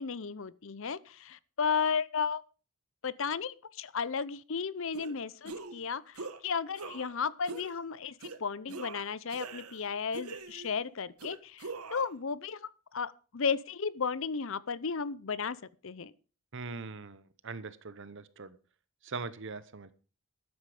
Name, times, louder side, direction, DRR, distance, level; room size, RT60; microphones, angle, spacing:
voice 1, 0.0-2.4 3.0-8.1 8.4-15.6 15.8-16.1, left 5 dB, 60° left, 0.6 m, -34 dB
sound 1, 4.9-5.1 5.4-5.8 6.1-6.4 6.7-7.1 7.5-7.7 8.2-8.4 8.7-9.8 10.1-10.8 11.2-12.1, right 3 dB, 85° right, 1.3 m, -43 dB
voice 2, 16.5-18.6 19.0-19.9, right 4 dB, 55° right, 0.8 m, -41 dB
13.0 x 9.7 x 4.9 m
head